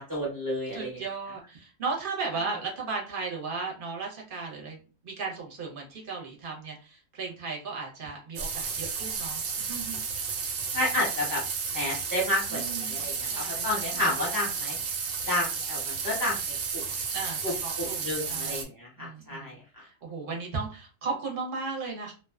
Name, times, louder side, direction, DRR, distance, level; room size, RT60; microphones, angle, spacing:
voice 1, 0.0-1.0 10.7-11.4 11.7-14.8 15.3-16.8 17.4-17.5 17.8-19.6, left 1 dB, 15° right, -5 dB, 0.9 m, -31 dB
voice 2, 0.7-10.0 12.5-14.0 17.1-18.7 19.0-22.1, right 4 dB, 45° right, -1 dB, 0.9 m, -36 dB
sound 1, 8.4-18.6, right 5 dB, 80° right, 1.1 m, -32 dB
2.5 x 2.3 x 2.3 m, 0.36 s
omnidirectional pair, 1.4 m